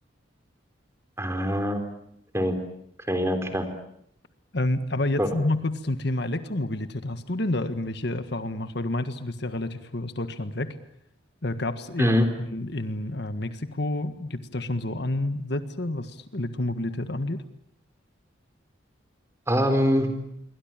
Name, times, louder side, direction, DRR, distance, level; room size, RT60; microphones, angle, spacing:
voice 1, 1.2-1.8 2.3-2.6 3.1-3.7 5.2-5.3 12.0-12.3 19.5-20.1, equal, 15° right, 7 dB, 3.9 m, -23 dB
voice 2, 4.5-10.8 11.4-12.2 12.5-17.4, left 1 dB, 55° left, 10 dB, 1.7 m, -29 dB
28.0 x 23.5 x 9.0 m, 0.73 s
head